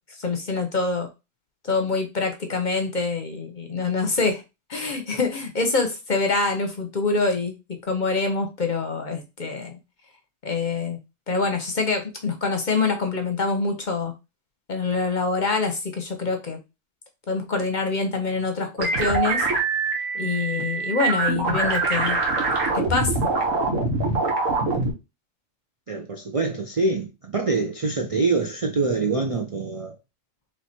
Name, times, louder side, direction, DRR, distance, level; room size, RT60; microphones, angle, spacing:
voice 1, 0.2-1.1 1.6-4.4 4.7-9.7 10.4-11.0 11.3-14.1 14.7-16.6 17.3-19.4 20.1-22.2 22.7-23.3, left 4 dB, 45° left, 0.8 m, -25 dB
sound 1, 18.8-24.9, right 3 dB, 85° right, 1.5 m, -24 dB
voice 2, 25.9-30.0, right 3 dB, 50° right, 0.4 m, -25 dB
3.2 x 3.2 x 4.2 m
omnidirectional pair, 1.3 m